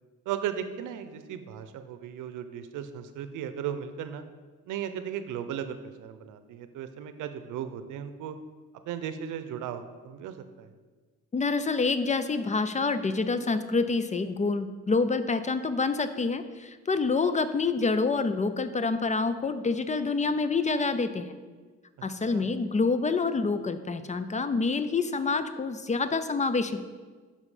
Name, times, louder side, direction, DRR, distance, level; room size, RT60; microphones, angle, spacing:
voice 1, 0.3-4.2 4.7-8.4 8.9-10.7 22.0-22.5, right 9 dB, 85° right, 10 dB, 0.6 m, -36 dB
voice 2, 11.3-21.3 22.0-26.8, left 4 dB, 25° left, 12 dB, 0.4 m, -27 dB
7.3 x 5.3 x 4.9 m, 1.4 s
cardioid pair, 90°, 30 cm